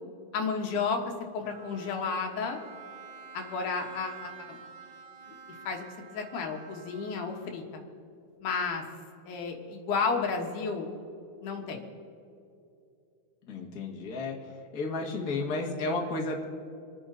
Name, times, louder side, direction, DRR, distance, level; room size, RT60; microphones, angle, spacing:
voice 1, 0.3-1.0 1.3-2.6 3.3-4.5 5.6-7.8 8.4-8.8 9.3-10.9 11.4-11.8, left 5 dB, 85° left, 2 dB, 3.0 m, -32 dB
Bowed string instrument, 1.4-7.9, right 6 dB, 75° right, 2.5 m, -49 dB
voice 2, 13.5-14.4 14.7-16.5, left 3 dB, 35° left, 0 dB, 1.8 m, -32 dB
27.0 x 9.5 x 4.0 m, 2.6 s
omnidirectional pair, 3.5 m